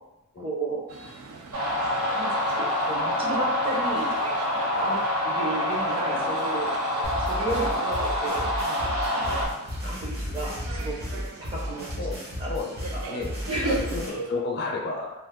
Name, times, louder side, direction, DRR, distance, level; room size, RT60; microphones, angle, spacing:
voice 1, 0.4-0.8 1.8-4.2 4.8-5.0 5.2-6.7 7.3-9.4 9.8-12.1 12.4-12.5 12.9-13.0 13.5-14.0, right 2 dB, 25° right, -4 dB, 0.6 m, -33 dB
sound 1, 0.9-14.3, right 4 dB, 70° right, 0.4 m, -42 dB
sound 2, 1.5-9.5, left 1 dB, 90° right, 1.1 m, -26 dB
sound 3, 7.0-14.1, left 1 dB, 55° right, 1.2 m, -33 dB
voice 2, 12.5-13.3 13.6-15.2, left 3 dB, 45° left, 0 dB, 0.5 m, -32 dB
2.5 x 2.3 x 3.5 m, 0.97 s
head